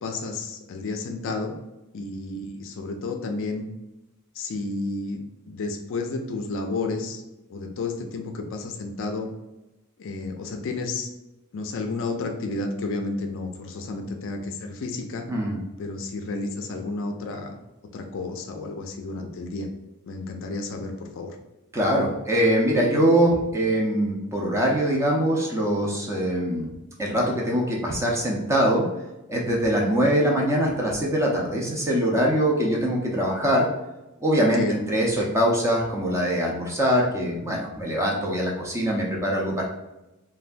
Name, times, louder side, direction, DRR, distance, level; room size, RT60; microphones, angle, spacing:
voice 1, 0.0-1.5 1.9-3.7 4.4-7.2 7.5-9.3 10.0-11.1 11.5-15.2 15.8-17.6 17.9-19.7 20.0-21.4 34.5-34.8, left 3 dB, 60° left, 4 dB, 0.4 m, -31 dB
voice 2, 15.3-15.6 21.7-26.7 27.0-28.8 29.3-33.7 34.2-39.6, equal, 15° right, -2 dB, 0.5 m, -23 dB
3.3 x 2.2 x 2.5 m, 0.99 s
head